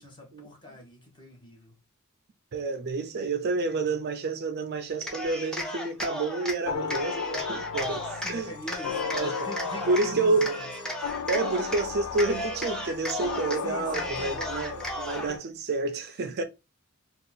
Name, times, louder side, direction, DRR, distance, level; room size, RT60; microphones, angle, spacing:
voice 1, 0.0-1.8 8.2-10.7 13.6-14.8 15.1-15.4, equal, 20° left, 1.1 m, -42 dB
voice 2, 2.5-8.5 8.9-9.5 9.8-10.6 11.3-16.4, right 3 dB, 50° right, 0.4 m, -29 dB
Cheering, 4.9-6.6 6.9-8.3 8.7-10.1 10.4-11.8 12.1-13.6 13.9-15.3, left 1 dB, 5° left, 0.6 m, -35 dB
sound 1, 6.7-15.4, left 6 dB, 75° left, 0.3 m, -35 dB
sound 2, 7.8-15.3, left 4 dB, 40° left, 1.3 m, -52 dB
2.7 x 2.3 x 4.0 m
head